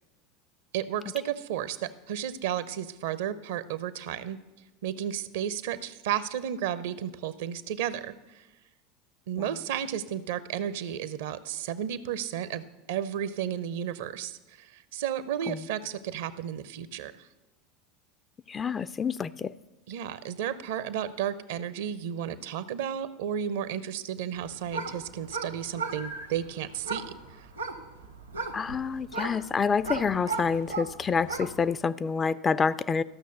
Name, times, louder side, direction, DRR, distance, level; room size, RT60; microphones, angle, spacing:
voice 1, 0.7-4.4 4.8-8.5 9.3-17.3 19.9-27.1 27.4-27.5, right 10 dB, 60° right, 15 dB, 0.6 m, -33 dB
voice 2, 18.5-19.5 28.5-33.0, left 5 dB, 25° left, 17 dB, 0.3 m, -28 dB
sound 1, 24.3-31.7, right 4 dB, 85° right, 1.0 m, -37 dB
14.0 x 6.3 x 6.7 m, 1.1 s
figure-of-eight pair, 75°, 0 cm